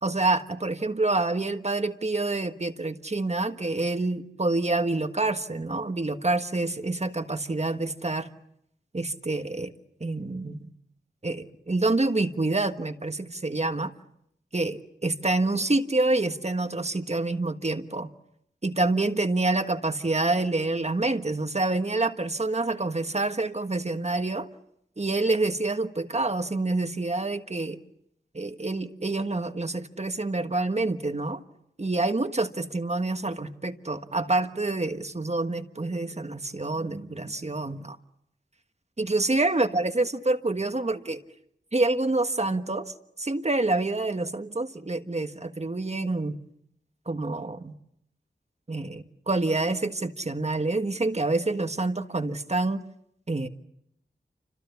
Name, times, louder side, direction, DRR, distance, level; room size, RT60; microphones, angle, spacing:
voice 1, 0.0-8.3 8.9-9.7 10.0-10.7 11.2-13.9 14.5-18.1 18.6-24.5 25.0-27.8 28.3-31.4 31.8-38.0 39.0-41.2 41.7-46.4 47.1-47.7 48.7-52.8 53.3-53.5, right 2 dB, 35° right, 8 dB, 1.4 m, -27 dB
29.0 x 26.0 x 7.0 m, 0.77 s
wide cardioid pair, 70°, 18 cm